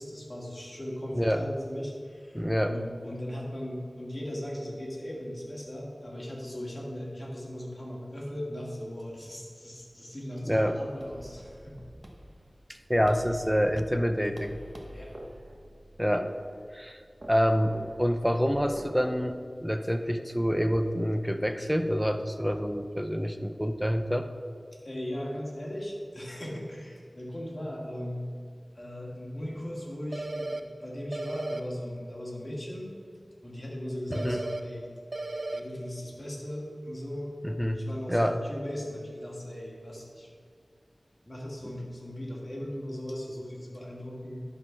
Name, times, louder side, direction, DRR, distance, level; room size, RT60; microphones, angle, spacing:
voice 1, 0.0-11.8 14.9-15.1 24.8-28.3 28.7-32.9 33.4-34.9 35.5-37.3 37.7-40.3 41.3-44.4, equal, 35° left, -4 dB, 2.2 m, -38 dB
voice 2, 1.1-1.4 2.3-2.7 10.5-10.8 12.9-14.6 16.0-16.3 16.7-17.0 17.3-24.3 34.1-34.4 37.4-37.8 38.1-38.4, equal, ahead, 8 dB, 0.6 m, -27 dB
sound 1, 11.0-19.3, right 1 dB, 40° right, 1.1 m, -46 dB
sound 2, 30.1-30.6 31.1-31.6 34.1-34.6 35.1-35.6, right 2 dB, 65° right, 0.6 m, -34 dB
10.5 x 3.9 x 5.9 m, 2.2 s
wide cardioid pair, 50°, 0 cm